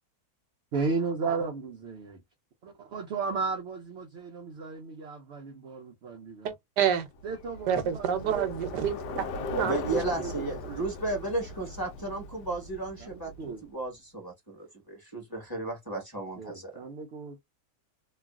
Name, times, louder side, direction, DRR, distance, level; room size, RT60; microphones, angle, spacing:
voice 1, 0.7-2.2 2.6-6.5 7.2-8.5 9.5-9.7 10.2-10.3 13.1-13.6 16.4-17.4, right 4 dB, 60° right, 0.7 m, -34 dB
voice 2, 6.4-7.1 7.7-9.3 9.6-10.0, right 8 dB, 85° right, 1.3 m, -28 dB
Bicycle, 7.1-13.7, left 3 dB, 90° left, 1.2 m, -39 dB
voice 3, 9.6-13.3 13.6-16.8, right 2 dB, 15° left, 1.1 m, -34 dB
3.1 x 2.3 x 2.3 m
omnidirectional pair, 1.8 m